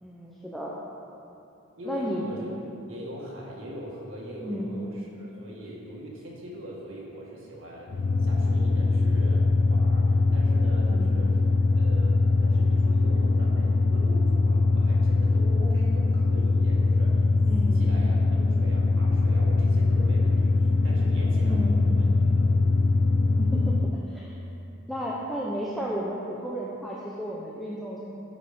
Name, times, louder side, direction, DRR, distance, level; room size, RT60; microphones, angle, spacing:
voice 1, 0.0-0.7 1.8-2.2 4.4-4.7 5.4-5.5 10.9-11.1 17.5-17.9 21.4-21.8 23.4-23.8 24.1-24.4 24.9-28.1, equal, ahead, -5 dB, 0.7 m, -33 dB
voice 2, 1.8-2.5 2.9-7.9 8.2-11.3 11.7-17.2 17.6-22.1 22.3-22.5, equal, 75° right, -4 dB, 2.1 m, -41 dB
sound 1, 7.9-24.0, left 3 dB, 55° left, 0.3 m, -22 dB
11.0 x 5.4 x 5.4 m, 2.7 s
head